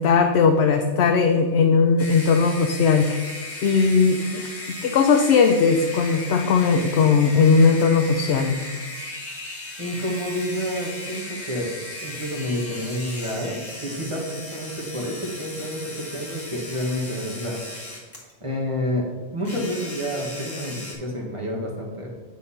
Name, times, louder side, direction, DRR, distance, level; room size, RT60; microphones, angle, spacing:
voice 1, 0.0-3.2 3.6-4.4 4.8-8.6, left 5 dB, 65° left, 5 dB, 0.8 m, -18 dB
sound 1, 2.0-18.3 19.4-20.9, left 1 dB, 10° left, 1.6 m, -36 dB
voice 2, 9.8-11.7 12.0-17.6 18.4-19.1 19.3-22.1, equal, 25° right, -2 dB, 1.5 m, -29 dB
8.2 x 4.1 x 5.6 m, 1.3 s
omnidirectional pair, 1.2 m